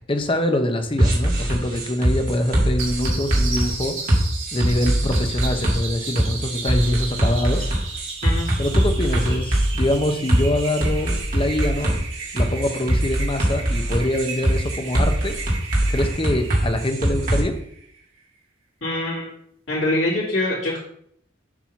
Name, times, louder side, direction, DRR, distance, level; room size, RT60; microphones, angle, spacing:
voice 1, 0.0-4.0 4.5-7.7 8.6-12.0 12.3-15.4 15.8-17.5, left 1 dB, 25° left, 6 dB, 0.7 m, -24 dB
sound 1, 1.0-17.4, right 1 dB, 45° right, 1.8 m, -22 dB
sound 2, 2.8-18.0, right 4 dB, 80° right, 2.0 m, -35 dB
voice 2, 18.8-19.3 19.7-20.8, left 1 dB, 70° left, -8 dB, 2.3 m, -24 dB
7.1 x 2.8 x 5.7 m, 0.67 s
head